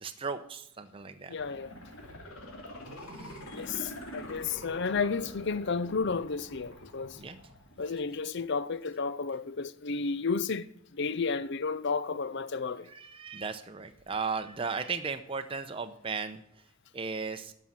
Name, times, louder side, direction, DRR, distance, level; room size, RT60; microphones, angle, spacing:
voice 1, 0.0-1.3 3.2-3.3 7.2-7.4 12.9-16.4 16.9-17.5, right 5 dB, 25° right, 0.7 m, -36 dB
sound 1, 1.3-8.3 8.7-8.8, equal, 85° left, 2.9 m, -45 dB
voice 2, 1.3-1.7 3.5-7.2 7.8-12.9, left 4 dB, 55° left, 0.6 m, -32 dB
11.0 x 6.3 x 7.3 m
head